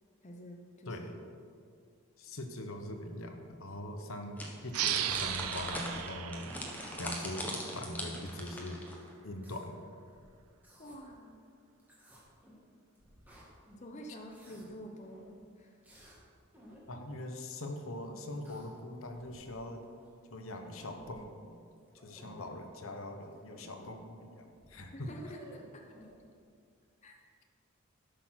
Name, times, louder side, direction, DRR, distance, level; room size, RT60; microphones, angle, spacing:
voice 1, 0.2-1.1 10.8-11.3 13.8-15.3 15.6-15.8 24.9-25.8 27.0-27.3, equal, 30° left, 2 dB, 0.8 m, -48 dB
voice 2, 2.2-6.5 7.0-8.8 9.2-9.7 16.9-19.8 20.3-21.5 22.0-25.1, left 1 dB, 70° left, 5 dB, 1.1 m, -42 dB
sound 1, 4.4-9.1, left 1 dB, 10° left, 1.3 m, -41 dB
sound 2, 4.7-8.0, right 12 dB, 90° right, 0.5 m, -37 dB
sound 3, 9.3-9.7 10.1-11.0 11.8-12.6 13.0-13.9 14.1-14.6 15.0-15.3 15.8-16.2 16.5-16.8 18.0-18.7 19.0-19.7 20.1-20.2 20.4-21.1 21.8-22.5 23.2-23.9 24.2-24.3 24.5-26.1, equal, 10° right, 2.0 m, -56 dB
12.5 x 6.8 x 5.9 m, 2.2 s
head